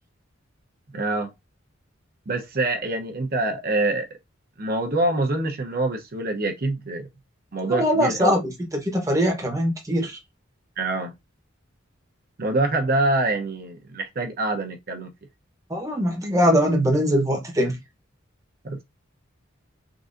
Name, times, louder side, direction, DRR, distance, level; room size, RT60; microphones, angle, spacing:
voice 1, 0.9-1.3 2.3-4.1 4.6-7.1 7.5-8.3 10.8-11.1 12.4-15.1 18.6-18.8, right 2 dB, 50° right, 0.8 m, -25 dB
voice 2, 7.7-10.2 15.7-17.8, equal, 15° right, 1.0 m, -22 dB
3.8 x 2.7 x 2.5 m
head